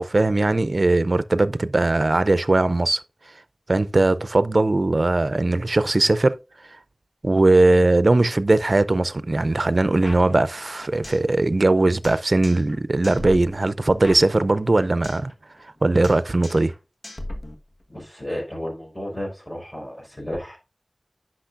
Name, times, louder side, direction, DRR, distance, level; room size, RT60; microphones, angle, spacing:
voice 1, 0.0-3.0 3.7-6.4 7.2-15.3 15.8-16.7, right 2 dB, 65° right, 0.5 m, -19 dB
sound 1, 10.0-11.3 11.6-11.7 12.0-12.8 13.0-15.3 15.6-15.8 16.0-16.8 17.0-18.0, left 1 dB, 75° left, 1.4 m, -38 dB
voice 2, 17.9-20.6, left 1 dB, 20° left, 4.7 m, -33 dB
10.0 x 6.1 x 2.5 m
wide cardioid pair, 50°, 0 cm